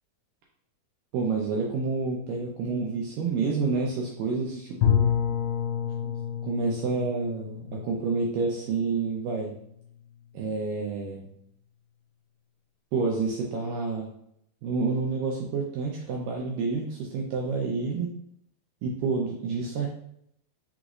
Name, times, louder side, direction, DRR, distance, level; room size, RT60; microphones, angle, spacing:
voice 1, 1.1-5.2 6.0-6.1 6.4-9.5 10.3-11.3 12.9-14.1 14.6-18.1 18.8-19.9, right 4 dB, 85° right, -2 dB, 2.0 m, -29 dB
Bowed string instrument, 4.8-9.6, left 8 dB, 75° left, 2.2 m, -29 dB
6.0 x 3.0 x 2.4 m, 0.72 s
omnidirectional pair, 4.4 m